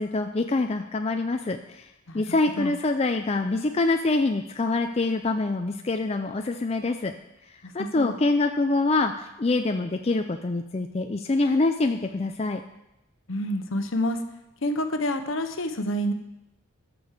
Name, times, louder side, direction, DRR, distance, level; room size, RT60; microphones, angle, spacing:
voice 1, 0.0-1.9 2.1-7.1 7.7-12.6, left 3 dB, 30° left, 5 dB, 0.4 m, -25 dB
voice 2, 7.6-8.2 13.3-14.2 14.6-16.1, equal, 65° left, 7 dB, 1.0 m, -28 dB
11.5 x 6.2 x 6.6 m, 0.89 s
head